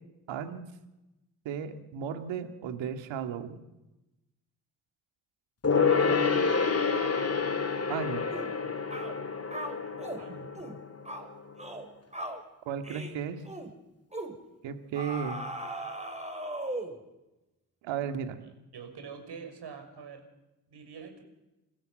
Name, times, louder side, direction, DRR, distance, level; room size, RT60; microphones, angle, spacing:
voice 1, 0.3-0.6 1.5-3.6 7.9-8.3 12.7-13.4 14.6-15.4 17.8-18.4, right 7 dB, 75° right, 8 dB, 2.2 m, -34 dB
Gong, 5.6-11.5 11.8-11.9, left 5 dB, 30° left, 2.6 m, -28 dB
voice 2, 5.8-6.5 10.2-10.5 18.4-20.2 20.7-21.2, right 6 dB, 60° right, 6 dB, 6.1 m, -44 dB
sound 1, 8.3-8.5 8.9-9.1 9.5-10.2 10.6-10.8 11.1-11.3 11.6-11.9 12.1-12.4 12.8-13.1 13.5-13.7 14.1-14.4 15.0-17.0, right 1 dB, 15° right, 5.6 m, -38 dB
28.0 x 15.5 x 7.9 m, 1.0 s
hypercardioid pair, 40°, 45 cm